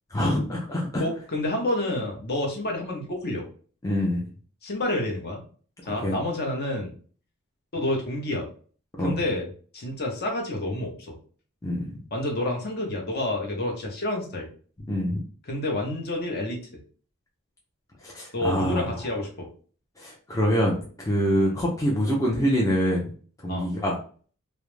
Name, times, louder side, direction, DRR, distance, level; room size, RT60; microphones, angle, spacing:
voice 1, 0.1-1.0 3.8-4.3 5.9-6.1 9.0-9.2 11.6-11.9 14.9-15.2 18.0-18.9 20.0-23.1 23.4-24.0, equal, 15° left, -2 dB, 0.4 m, -25 dB
voice 2, 1.0-3.4 4.6-5.4 5.9-6.9 7.7-8.5 9.0-9.5 9.7-11.1 12.1-14.5 15.5-16.6 18.3-19.5 21.4-21.5 23.5-23.7, left 1 dB, 45° left, 1 dB, 0.7 m, -29 dB
2.3 x 2.0 x 3.1 m, 0.42 s
head